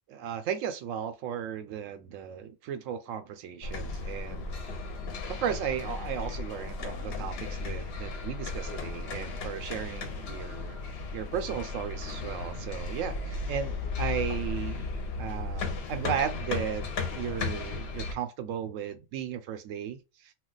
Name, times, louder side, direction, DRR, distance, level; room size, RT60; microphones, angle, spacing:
voice 1, 0.1-4.6 5.3-10.8 11.1-14.9 15.2-20.3, right 8 dB, 85° right, 0.9 m, -35 dB
sound 1, 3.6-18.1, left 4 dB, 60° left, 0.7 m, -35 dB
2.3 x 2.2 x 3.8 m
omnidirectional pair, 1.3 m